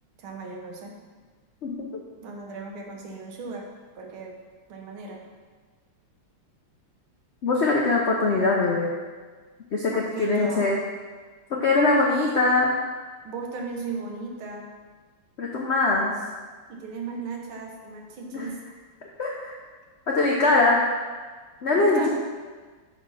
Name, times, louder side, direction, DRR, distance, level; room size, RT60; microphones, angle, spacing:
voice 1, 0.2-1.0 2.2-4.4 4.7-5.3 9.9-10.7 13.2-14.7 16.7-18.6 21.8-22.1, right 4 dB, 80° right, 1 dB, 1.9 m, -36 dB
voice 2, 1.6-2.0 7.4-8.9 9.7-10.8 11.6-12.7 15.4-16.1 18.3-18.5 19.2-19.6 20.1-20.8 21.6-22.1, left 3 dB, 85° left, -2 dB, 0.5 m, -22 dB
6.0 x 5.2 x 5.5 m, 1.4 s
omnidirectional pair, 2.3 m